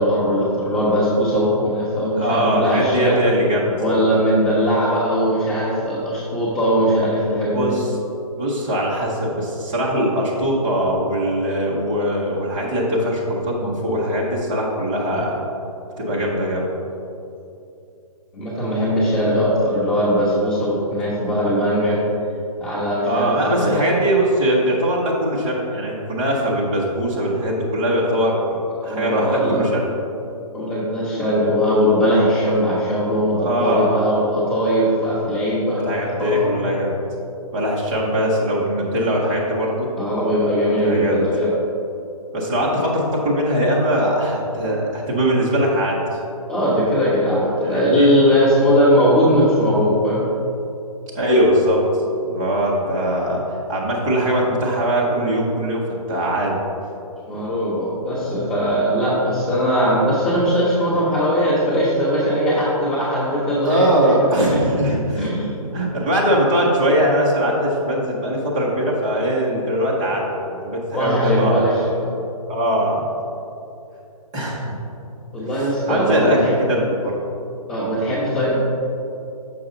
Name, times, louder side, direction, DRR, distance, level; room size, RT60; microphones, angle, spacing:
voice 1, 0.0-3.2 3.7-7.7 18.3-22.0 22.6-23.8 28.8-29.6 30.5-36.5 40.0-41.5 46.5-50.2 57.3-64.1 65.2-65.5 70.9-72.0 75.3-76.5 77.7-78.6, equal, 20° left, -11 dB, 1.1 m, -20 dB
voice 2, 2.2-3.8 7.5-7.9 8.4-15.4 16.0-16.7 23.1-28.6 28.8-29.8 33.3-34.0 35.8-36.9 37.5-39.9 40.8-41.3 42.3-46.0 47.6-48.2 51.1-51.8 52.2-53.4 53.7-56.6 58.1-58.7 63.6-65.4 65.7-71.6 72.5-73.0 74.3-74.8 75.9-77.2, equal, 10° right, -5 dB, 0.5 m, -21 dB
6.9 x 5.4 x 3.7 m, 2.7 s
hypercardioid pair, 175°, 19 cm